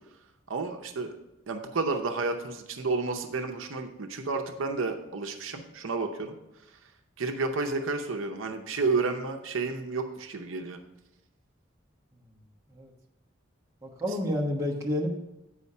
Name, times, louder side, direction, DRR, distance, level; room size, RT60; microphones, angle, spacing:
voice 1, 0.5-1.2 1.5-6.3 7.2-10.8, right 3 dB, 75° right, 5 dB, 0.7 m, -31 dB
voice 2, 13.8-15.1, left 1 dB, 15° right, -2 dB, 1.1 m, -30 dB
8.3 x 5.0 x 5.5 m, 0.92 s
head